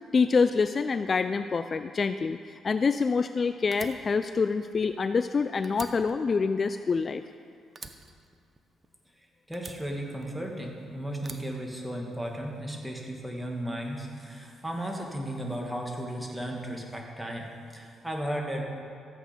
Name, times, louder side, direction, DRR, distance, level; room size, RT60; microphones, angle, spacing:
voice 1, 0.1-7.2, left 5 dB, 40° left, 10 dB, 0.3 m, -26 dB
Fire, 3.7-5.3 5.6-7.4 7.8-9.1 9.5-10.7 11.2-12.4, right 4 dB, 35° right, 0.8 m, -46 dB
voice 2, 9.2-18.6, right 1 dB, 5° right, 0 dB, 1.9 m, -35 dB
14.0 x 8.2 x 5.2 m, 2.3 s
cardioid pair, 90°, 0 cm